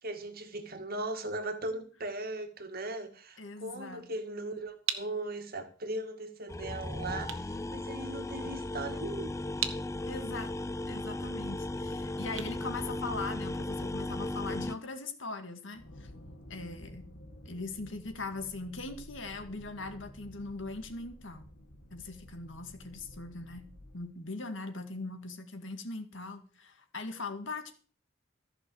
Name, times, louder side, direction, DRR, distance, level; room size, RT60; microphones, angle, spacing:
voice 1, 0.0-9.3, right 2 dB, 50° right, 7 dB, 1.9 m, -38 dB
voice 2, 3.4-4.0 8.4-8.5 10.1-10.5 10.9-16.1 16.5-17.0 17.5-21.4 21.9-23.7 23.9-27.7, left 3 dB, 70° left, 7 dB, 2.0 m, -40 dB
sound 1, 4.2-13.6, right 9 dB, 80° right, 1.5 m, -42 dB
sound 2, 6.5-14.7, left 2 dB, 15° left, 0.6 m, -36 dB
sound 3, 15.7-24.0, equal, 85° left, 1.9 m, -51 dB
14.5 x 6.3 x 7.9 m, 0.41 s
head